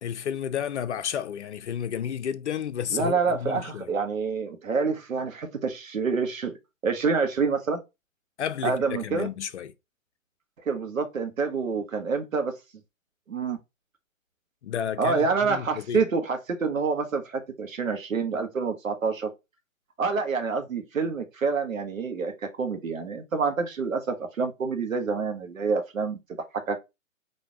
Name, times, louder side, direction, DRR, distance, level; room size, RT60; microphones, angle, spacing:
voice 1, 0.0-3.9 8.4-9.7 14.6-16.1, left 9 dB, 55° left, 0.6 m, -32 dB
voice 2, 2.9-6.6 6.8-7.8 8.6-9.3 10.7-12.5 13.3-13.6 15.0-19.3 20.0-26.2 26.7-26.8, right 5 dB, 75° right, 1.3 m, -27 dB
4.4 x 2.8 x 3.5 m
figure-of-eight pair, 130°, 41 cm